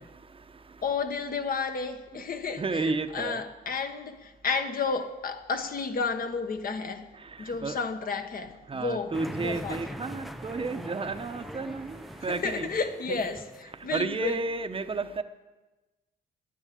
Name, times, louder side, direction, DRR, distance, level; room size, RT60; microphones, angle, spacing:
voice 1, 0.0-0.8 2.1-2.2 2.6-3.4 7.2-7.8 8.7-12.7 13.8-15.2, right 3 dB, 25° right, 1.0 m, -32 dB
voice 2, 0.8-7.1 7.4-10.0 12.2-14.4, left 4 dB, 45° left, 1.4 m, -32 dB
sound 1, 9.1-14.0, equal, ahead, 0.5 m, -42 dB
11.0 x 10.5 x 8.5 m
cardioid pair, 90°, 20 cm